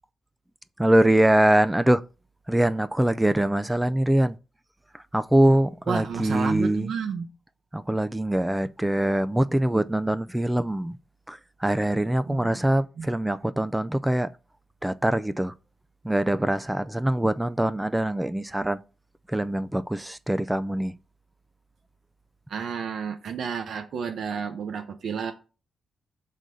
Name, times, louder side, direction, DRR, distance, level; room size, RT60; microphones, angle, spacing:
voice 1, 0.8-2.0 2.5-4.4 5.1-6.9 7.7-10.9 11.3-14.3 14.8-15.5 16.0-18.8 19.3-20.9, right 1 dB, 5° right, 0.3 m, -23 dB
voice 2, 5.9-7.3 12.3-12.6 13.0-13.1 22.5-25.3, right 6 dB, 65° right, 0.8 m, -31 dB
6.7 x 3.8 x 6.2 m
wide cardioid pair, 145°, 0 cm